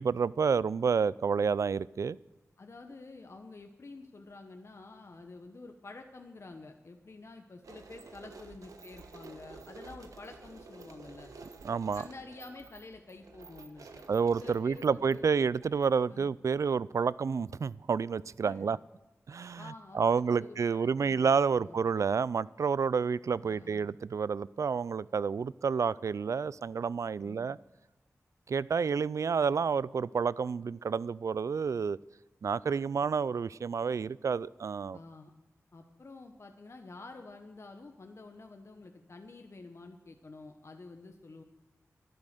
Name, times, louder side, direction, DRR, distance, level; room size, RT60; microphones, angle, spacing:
voice 1, 0.0-2.2 11.6-12.0 14.1-18.8 19.3-27.6 28.5-32.0 32.4-35.0, right 5 dB, 65° right, 0.3 m, -29 dB
voice 2, 2.6-11.3 11.9-14.0 14.4-15.2 16.1-16.3 18.4-18.7 19.6-21.8 23.4-23.9 27.2-27.5 34.9-35.3 35.7-41.4, left 3 dB, 55° left, 1.0 m, -49 dB
sound 1, 7.6-16.1, right 4 dB, 85° right, 1.2 m, -51 dB
12.0 x 10.5 x 6.6 m
cardioid pair, 50°, 6 cm